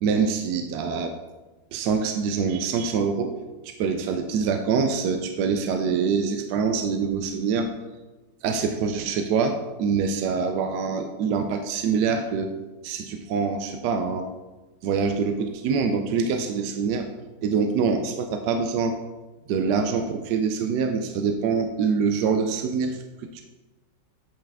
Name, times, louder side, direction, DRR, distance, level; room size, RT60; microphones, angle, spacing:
voice 1, 0.0-1.1 1.7-3.3 3.6-7.7 8.4-12.5 12.8-14.3 14.8-17.1 17.4-19.0 19.5-23.4, right 5 dB, 75° right, 6 dB, 1.1 m, -25 dB
8.5 x 5.7 x 3.4 m, 1.2 s
omnidirectional pair, 2.0 m